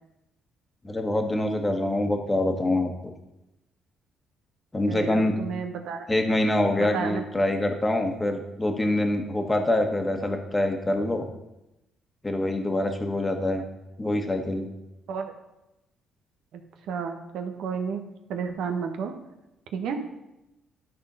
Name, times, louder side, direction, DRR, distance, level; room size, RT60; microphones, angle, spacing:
voice 1, 0.8-2.9 4.7-5.4 6.1-11.3 12.2-13.7 14.0-14.7, left 1 dB, 20° left, 4 dB, 1.4 m, -25 dB
voice 2, 4.9-6.1 6.8-7.2 15.1-15.3 16.5-19.1 19.7-20.0, right 6 dB, 75° right, 5 dB, 1.2 m, -32 dB
12.0 x 4.3 x 5.5 m, 0.93 s
supercardioid pair, 75°, 0 cm